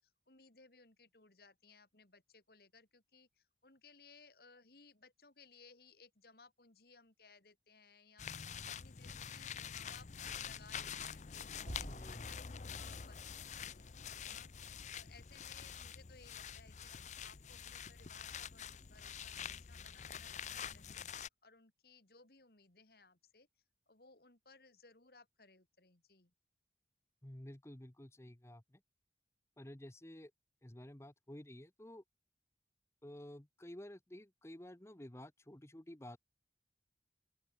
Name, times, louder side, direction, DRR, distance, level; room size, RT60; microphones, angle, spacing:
voice 1, 0.0-23.5 23.9-26.3, left 4 dB, 55° left, 2.4 m, -63 dB
sound 1, 8.2-21.3, left 7 dB, 40° left, 0.6 m, -46 dB
sound 2, 11.7-13.6, right 1 dB, 85° right, 3.1 m, -51 dB
voice 2, 11.8-12.3 27.2-28.8 29.6-30.3 30.6-32.0 33.0-36.2, left 1 dB, 15° left, 1.0 m, -52 dB
open air
head